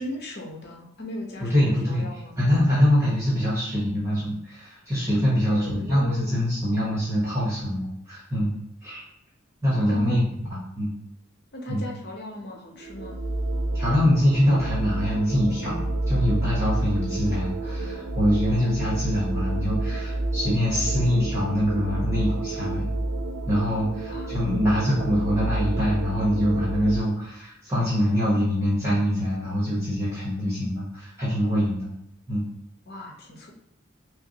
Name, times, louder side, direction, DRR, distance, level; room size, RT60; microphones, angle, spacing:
voice 1, 0.0-2.4 5.5-6.5 9.7-10.2 11.5-13.2 17.6-18.1 24.0-24.3 32.9-33.5, left 1 dB, 55° left, 0 dB, 0.8 m, -38 dB
voice 2, 1.5-2.0 2.4-9.0 9.6-10.2 10.7-10.9 11.7-11.9 13.7-22.9 23.5-31.9 32.3-32.4, equal, 15° right, -8 dB, 1.0 m, -24 dB
sound 1, 12.5-27.0, right 2 dB, 85° right, 0.6 m, -29 dB
5.6 x 2.0 x 2.8 m, 0.79 s
head